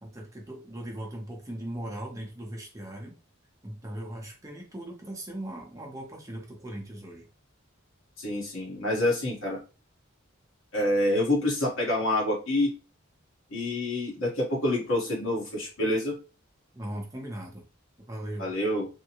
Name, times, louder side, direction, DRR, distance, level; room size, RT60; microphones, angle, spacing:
voice 1, 0.0-3.2 3.6-7.3 16.7-17.6 18.1-18.5, right 1 dB, 15° right, -1 dB, 0.7 m, -39 dB
voice 2, 8.2-9.6 10.7-12.7 13.5-16.2 18.4-18.9, left 1 dB, 75° left, -3 dB, 1.4 m, -27 dB
3.5 x 2.2 x 2.9 m, 0.33 s
head